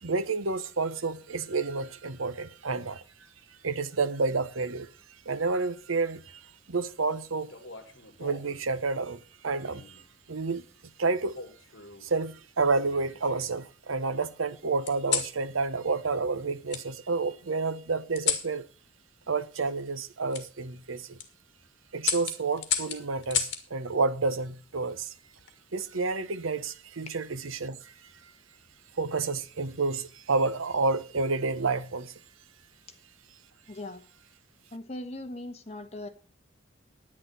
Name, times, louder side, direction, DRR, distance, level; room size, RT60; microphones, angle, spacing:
voice 1, 0.0-3.0 3.6-4.9 5.3-7.5 8.2-10.0 10.3-10.6 11.0-11.4 12.0-18.6 19.3-21.2 21.9-25.1 25.7-27.9 29.0-32.1, right 4 dB, 90° right, 0.9 m, -30 dB
sound 1, 7.5-8.6 9.6-10.1 11.3-12.1 12.7-13.6 14.9-15.4 16.7-16.8 18.1-18.5 20.3-20.5 21.0-21.3 22.0-23.6 25.1-25.5, left 8 dB, 60° left, 1.9 m, -33 dB
voice 2, 33.7-34.0 34.7-36.1, left 1 dB, 30° left, 1.4 m, -39 dB
10.5 x 9.9 x 5.6 m
head